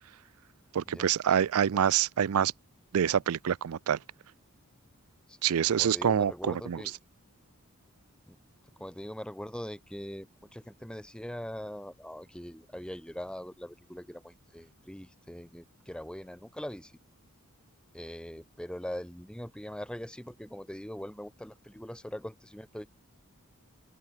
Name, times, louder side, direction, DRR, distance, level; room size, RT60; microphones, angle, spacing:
voice 1, 0.7-2.5 2.9-4.0 5.4-6.8, right 8 dB, 75° right, 0.4 m, -26 dB
voice 2, 5.3-6.9 8.3-8.4 8.8-16.9 17.9-22.9, equal, 5° left, 1.2 m, -42 dB
open air
head